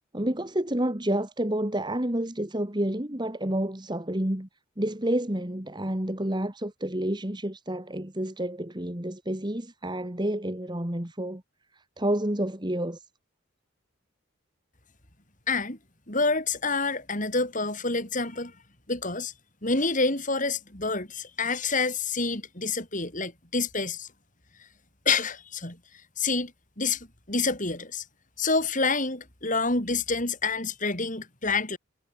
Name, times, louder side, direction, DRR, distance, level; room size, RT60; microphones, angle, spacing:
voice 1, 0.1-4.5 4.8-11.4 12.0-13.0, right 1 dB, 20° right, 1.9 m, -29 dB
voice 2, 15.5-15.8 16.1-18.5 18.9-19.3 19.6-24.1 25.0-25.8 26.2-26.5 26.8-28.0 28.4-31.8, left 3 dB, 40° left, 6.3 m, -28 dB
head